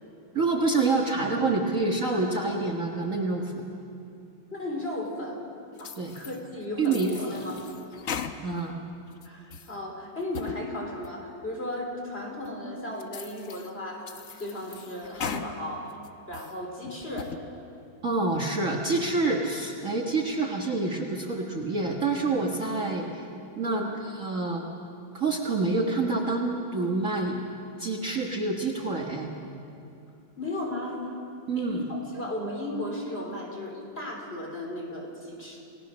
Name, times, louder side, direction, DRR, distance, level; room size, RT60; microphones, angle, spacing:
voice 1, 0.3-3.6 6.0-6.1 6.8-7.1 8.4-8.8 18.0-23.2 23.6-24.6 25.1-27.4 27.8-29.3 31.5-31.8, right 3 dB, 40° right, 1 dB, 1.7 m, -27 dB
voice 2, 4.5-5.4 5.8-7.7 9.2-16.0 16.3-17.3 23.6-24.0 30.4-31.1 31.6-35.6, left 1 dB, 30° left, 1 dB, 3.6 m, -35 dB
sound 1, 5.8-6.4 6.8-8.7 9.1-9.7 10.2-10.6 11.0-11.1 11.7-11.8 12.5-12.6 13.0-13.7 14.1-15.5 15.9-16.6 17.0-17.4, left 7 dB, 50° left, 1.0 m, -38 dB
29.0 x 18.5 x 6.3 m, 2.6 s
omnidirectional pair, 2.2 m